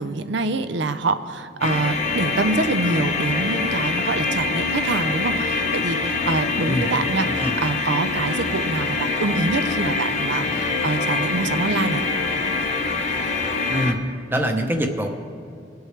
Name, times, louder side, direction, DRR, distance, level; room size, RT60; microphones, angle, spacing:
voice 1, 0.0-7.3 7.6-12.0, right 3 dB, 70° right, 11 dB, 0.6 m, -25 dB
sound 1, 1.6-13.9, left 3 dB, 35° left, 0.8 m, -24 dB
voice 2, 14.3-15.1, equal, 10° right, 4 dB, 0.8 m, -23 dB
21.0 x 8.0 x 3.3 m, 2.4 s
head